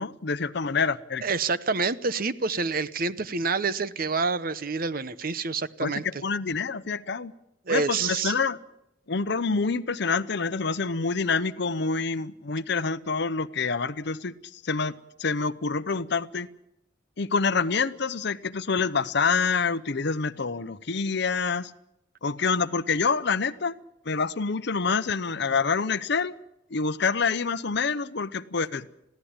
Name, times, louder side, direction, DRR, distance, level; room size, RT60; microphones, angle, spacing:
voice 1, 0.0-1.2 5.8-7.3 7.7-8.6 9.1-16.5 17.2-21.7 22.2-23.7 24.1-26.3 26.7-28.9, left 4 dB, 55° left, 15 dB, 0.7 m, -27 dB
voice 2, 1.2-6.0 7.7-8.3, right 4 dB, 45° right, 15 dB, 0.8 m, -27 dB
22.0 x 16.0 x 8.8 m, 0.86 s
head